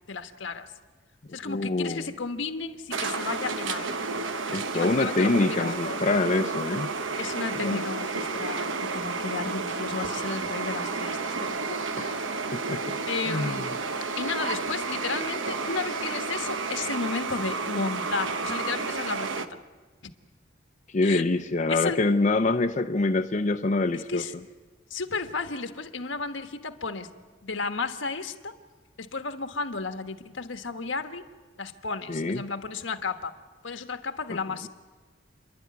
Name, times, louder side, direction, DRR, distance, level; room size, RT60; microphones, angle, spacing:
voice 1, 0.1-0.7 1.3-4.0 4.7-6.0 7.2-11.8 13.1-13.7 14.2-19.6 21.0-21.2 21.7-22.0 23.9-24.3 24.9-27.1 27.4-28.6 29.0-31.2 31.6-33.3 33.6-34.7, left 4 dB, 80° left, 8 dB, 1.3 m, -33 dB
voice 2, 1.4-2.1 4.5-6.9 7.6-7.8 12.0-12.2 12.5-13.0 13.3-13.6 20.9-24.2 32.1-32.4 34.3-34.4, left 2 dB, 40° left, 6 dB, 0.6 m, -25 dB
sound 1, 2.9-19.5, right 4 dB, 90° right, 1.0 m, -31 dB
29.5 x 11.5 x 9.6 m, 1.4 s
head